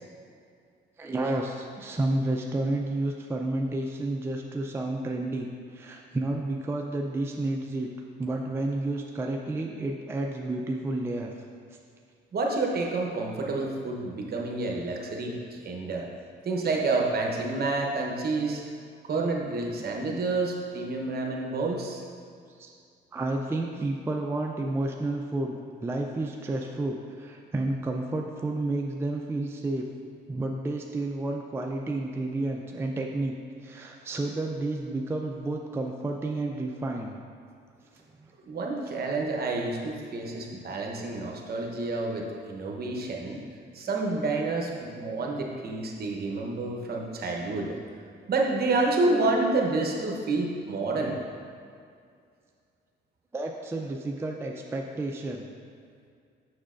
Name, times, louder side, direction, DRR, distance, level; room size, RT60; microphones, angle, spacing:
voice 1, 1.0-7.9 8.2-11.3 22.6-22.7 23.1-29.8 30.3-33.4 33.6-37.2 37.9-38.3 38.8-38.9 53.3-55.5, right 2 dB, 10° right, 1 dB, 0.4 m, -31 dB
voice 2, 12.3-16.1 16.4-18.6 19.0-22.0 38.4-43.4 43.7-47.8 48.3-51.2, right 3 dB, 50° right, 0 dB, 0.9 m, -29 dB
6.3 x 6.0 x 2.5 m, 2.3 s
cardioid pair, 90°, 20 cm